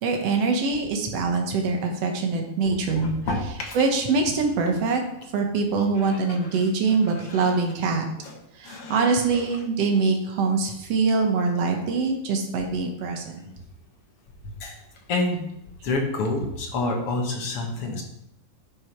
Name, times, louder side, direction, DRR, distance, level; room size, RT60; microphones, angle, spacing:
voice 1, 0.0-5.0 5.3-8.0 8.6-13.2, right 4 dB, 60° right, 3 dB, 1.8 m, -24 dB
voice 2, 2.6-3.8 5.8-6.4 7.1-7.5 8.2-8.3 8.6-9.4 14.6-14.7 15.1-15.4 15.8-18.0, left 2 dB, 55° left, 1 dB, 1.7 m, -29 dB
11.5 x 5.9 x 4.6 m, 0.82 s
omnidirectional pair, 4.2 m